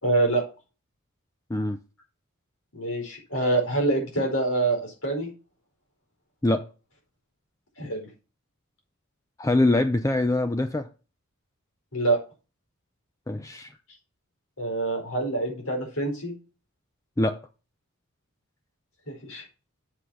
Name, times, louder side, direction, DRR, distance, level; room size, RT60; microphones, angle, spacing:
voice 1, 0.0-0.4 2.7-5.3 7.8-8.1 11.9-12.2 14.6-16.3 19.1-19.4, right 2 dB, 80° left, 4.7 m, -26 dB
voice 2, 9.4-10.9 13.3-13.7 17.2-17.4, left 2 dB, 15° left, 0.5 m, -23 dB
8.3 x 6.0 x 4.9 m
head